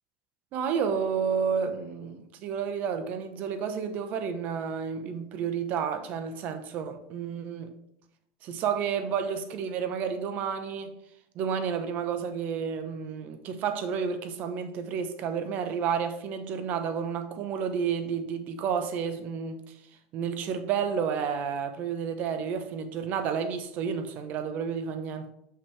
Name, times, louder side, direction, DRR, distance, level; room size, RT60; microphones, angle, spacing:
voice 1, 0.5-7.7 8.4-11.0 11.3-19.6 20.1-25.3, right 7 dB, 50° right, 0.7 m, -31 dB
5.6 x 5.6 x 3.2 m
supercardioid pair, 130°, 4 cm